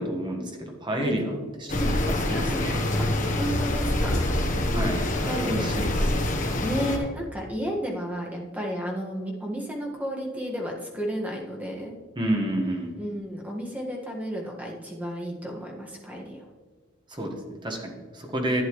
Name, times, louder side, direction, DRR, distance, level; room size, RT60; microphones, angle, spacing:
voice 1, 0.0-1.3 1.6-1.7 2.0-2.8 4.7-6.4 12.1-13.0 17.1-18.6, right 1 dB, 25° right, 2 dB, 1.4 m, -30 dB
sound 1, 1.7-7.0, left 1 dB, 40° left, 1.2 m, -25 dB
voice 2, 3.4-4.2 5.2-5.9 6.6-12.0 13.0-16.4, equal, 10° right, -2 dB, 1.6 m, -32 dB
11.5 x 9.4 x 3.1 m, 1.5 s
head